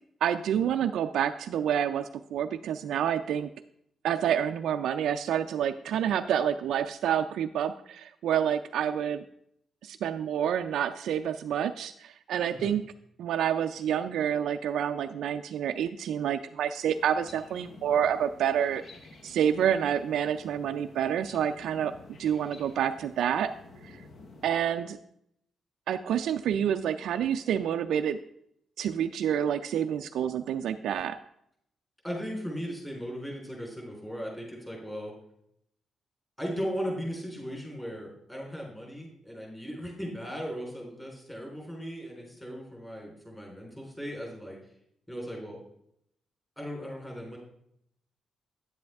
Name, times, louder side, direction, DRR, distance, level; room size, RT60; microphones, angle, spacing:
voice 1, 0.2-3.5 4.0-9.2 9.8-12.8 13.2-18.8 19.2-21.9 22.2-23.5 23.8-24.0 24.4-25.0 25.9-28.2 28.8-31.2, right 9 dB, 80° right, 7 dB, 0.3 m, -28 dB
sound 1, 16.9-24.5, left 3 dB, 50° left, 1.0 m, -51 dB
voice 2, 32.0-35.1 36.4-44.6 45.1-45.6 46.6-47.4, equal, 10° left, -2 dB, 3.8 m, -37 dB
9.3 x 7.7 x 3.5 m, 0.72 s
cardioid pair, 120°, 0 cm